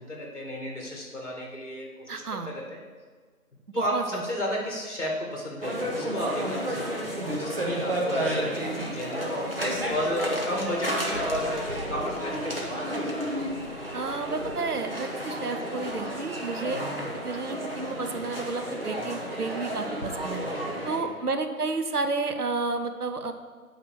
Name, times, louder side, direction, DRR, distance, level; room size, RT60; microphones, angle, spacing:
voice 1, 0.0-2.8 3.7-13.0 20.4-21.1, equal, 50° left, -1 dB, 2.2 m, -33 dB
voice 2, 2.1-2.5 3.7-4.2 13.9-16.9 17.1-20.4 20.8-23.3, right 3 dB, 80° right, 7 dB, 0.9 m, -31 dB
sound 1, 5.6-21.0, equal, 40° right, 1.1 m, -31 dB
9.0 x 3.4 x 6.3 m, 1.5 s
figure-of-eight pair, 170°, 45 cm